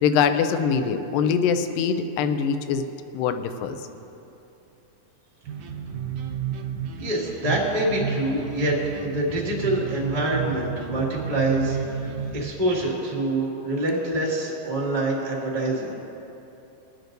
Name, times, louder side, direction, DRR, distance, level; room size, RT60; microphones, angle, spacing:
voice 1, 0.0-2.9 3.1-3.8, left 6 dB, 80° left, 9 dB, 2.2 m, -23 dB
sound 1, 5.4-12.5, right 7 dB, 75° right, 1.9 m, -31 dB
voice 2, 7.0-11.8 12.3-16.0, right 1 dB, 30° right, -6 dB, 0.6 m, -25 dB
22.5 x 9.3 x 2.6 m, 2.9 s
omnidirectional pair, 4.3 m